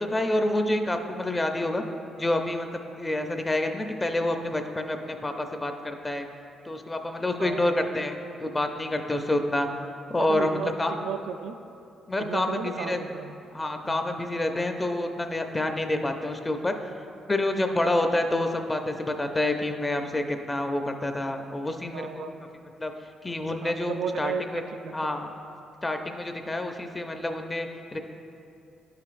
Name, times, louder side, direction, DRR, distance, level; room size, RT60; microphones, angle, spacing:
voice 1, 0.0-1.8 2.2-2.7 3.0-6.3 6.7-9.7 10.1-10.5 10.8-10.9 12.1-13.0 13.5-16.7 17.3-22.3 22.8-22.9 23.2-24.6 24.9-25.3 25.8-28.0, left 1 dB, 20° left, 5 dB, 0.5 m, -28 dB
voice 2, 7.4-7.8 9.6-9.7 10.2-11.6 12.2-13.4 13.8-14.0 14.3-14.5 21.9-22.3 23.6-25.1, right 6 dB, 80° right, 8 dB, 0.3 m, -34 dB
10.5 x 5.7 x 2.5 m, 2.7 s
cardioid pair, 90°, 0 cm